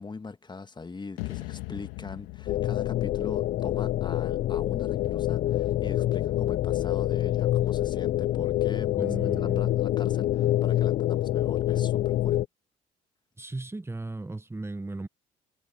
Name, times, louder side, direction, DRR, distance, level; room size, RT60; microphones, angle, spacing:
voice 1, 0.0-12.4, left 4 dB, 25° left, 1.9 m, -41 dB
sound 1, 1.2-4.4, left 22 dB, 75° left, 2.8 m, -40 dB
sound 2, 2.5-12.4, left 13 dB, 60° left, 0.8 m, -26 dB
voice 2, 9.0-9.8 13.4-15.1, right 2 dB, 15° right, 1.6 m, -36 dB
hypercardioid pair, 55°, 18 cm